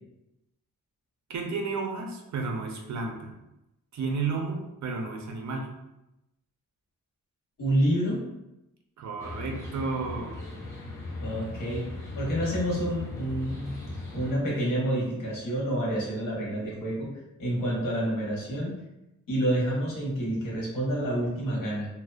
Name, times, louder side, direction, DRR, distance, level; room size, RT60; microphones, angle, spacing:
voice 1, 1.3-3.3 3.9-5.7 9.0-10.3, right 4 dB, 60° right, 2 dB, 0.5 m, -32 dB
voice 2, 7.6-8.2 11.2-11.9 12.2-13.7 14.1-17.1 17.4-18.8 19.3-21.9, right 1 dB, 85° left, -4 dB, 1.0 m, -28 dB
sound 1, 9.2-14.3, left 2 dB, 10° left, 0.7 m, -38 dB
2.6 x 2.0 x 2.3 m, 0.91 s
wide cardioid pair, 105°, 32 cm